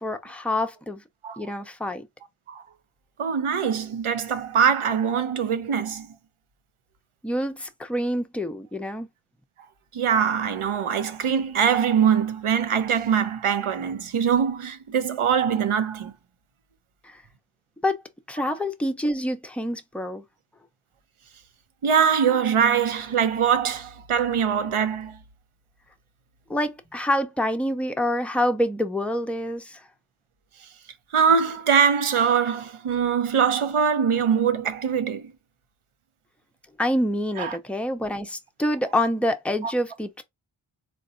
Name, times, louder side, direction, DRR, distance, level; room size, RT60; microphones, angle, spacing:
voice 1, 0.0-1.0 1.4-2.1 7.2-9.1 17.0-17.2 17.8-18.0 18.3-20.2 26.5-29.8 36.8-40.2, left 1 dB, 5° left, 0.4 m, -26 dB
voice 2, 3.2-6.1 9.9-16.1 18.5-18.6 21.8-25.2 31.1-35.3 37.4-37.6 39.6-39.7, right 7 dB, 80° right, 0.7 m, -23 dB
3.8 x 2.2 x 2.5 m
wide cardioid pair, 75°, 49 cm